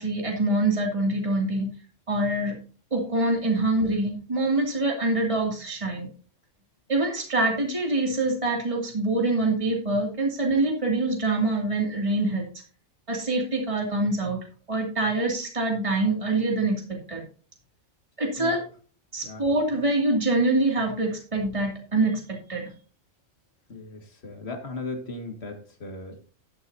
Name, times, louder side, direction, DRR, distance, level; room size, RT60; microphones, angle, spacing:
voice 1, 0.0-1.7 2.1-2.5 2.9-6.1 6.9-12.4 13.1-14.4 14.7-16.8 17.1-17.2 18.2-18.6 19.1-22.7, right 2 dB, 25° right, 0 dB, 2.7 m, -25 dB
voice 2, 23.7-26.3, left 2 dB, 50° left, 4 dB, 2.2 m, -37 dB
12.0 x 11.0 x 2.8 m, 0.39 s
omnidirectional pair, 1.4 m